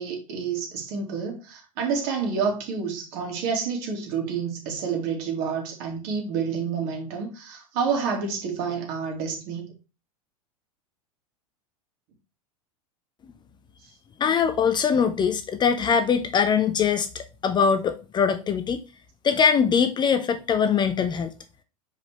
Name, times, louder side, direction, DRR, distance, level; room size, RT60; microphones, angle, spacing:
voice 1, 0.0-9.7, right 6 dB, 50° right, 2.6 m, -29 dB
voice 2, 14.2-18.8 19.2-21.3, left 6 dB, 25° left, 0.6 m, -22 dB
6.6 x 5.0 x 3.2 m
figure-of-eight pair, 90°, 18 cm